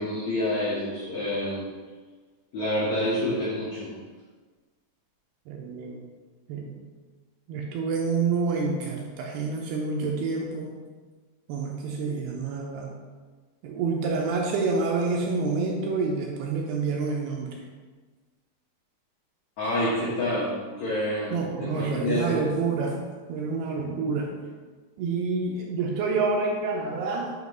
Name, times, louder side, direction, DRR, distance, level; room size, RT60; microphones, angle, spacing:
voice 1, 0.0-1.7 2.5-3.9 19.6-22.4, left 1 dB, 70° left, -9 dB, 1.7 m, -28 dB
voice 2, 5.5-6.0 6.5-6.7 7.5-10.8 11.5-12.9 13.6-17.5 21.3-23.0 23.3-24.3 25.0-27.3, right 4 dB, 85° right, 0 dB, 2.4 m, -28 dB
7.7 x 2.8 x 5.3 m, 1.4 s
omnidirectional pair, 4.9 m